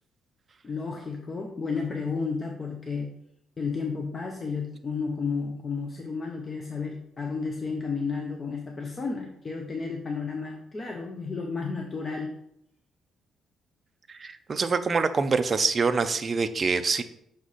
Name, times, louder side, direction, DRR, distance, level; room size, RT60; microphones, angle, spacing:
voice 1, 0.6-3.1 3.6-12.3, left 4 dB, 25° left, 2 dB, 0.6 m, -32 dB
voice 2, 14.1-17.0, right 4 dB, 25° right, 9 dB, 0.4 m, -25 dB
6.0 x 4.1 x 4.9 m, 0.76 s
cardioid pair, 165°, 0 cm